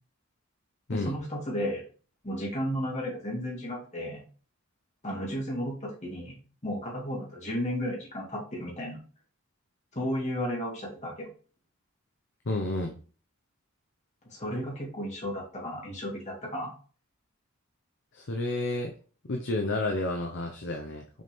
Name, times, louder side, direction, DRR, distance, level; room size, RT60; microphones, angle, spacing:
voice 1, 0.9-1.8 2.2-4.2 5.0-6.4 6.6-9.0 9.9-11.3 14.3-16.7, equal, 35° left, -3 dB, 2.5 m, -33 dB
voice 2, 12.5-13.0 18.1-18.9 19.3-21.2, left 2 dB, 60° left, 3 dB, 0.8 m, -30 dB
6.2 x 4.3 x 3.6 m, 0.40 s
head